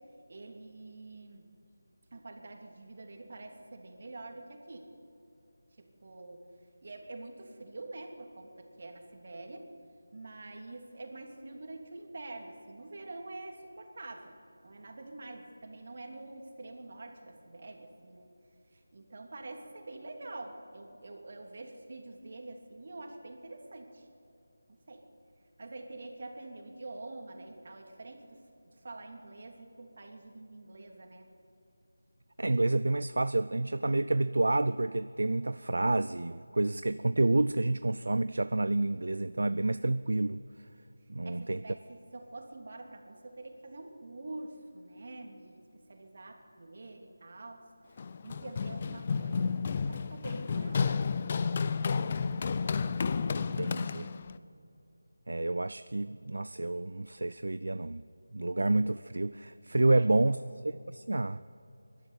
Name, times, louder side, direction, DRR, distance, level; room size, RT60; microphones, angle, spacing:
voice 1, 0.3-1.5 2.1-4.9 5.8-6.5 6.8-9.7 10.1-14.4 14.6-18.3 18.7-24.1 24.7-25.1 25.6-31.3 41.2-47.6 48.2-51.5 59.9-60.3, right 2 dB, 50° right, 3 dB, 3.0 m, -46 dB
voice 2, 32.4-40.4 41.1-41.6 53.4-54.1 55.3-58.0 58.3-60.4 60.6-61.4, right 2 dB, 70° right, 14 dB, 0.5 m, -29 dB
Run, 48.0-54.4, left 5 dB, 30° left, 0.6 m, -31 dB
23.0 x 12.5 x 9.6 m, 2.8 s
figure-of-eight pair, 165°, 0 cm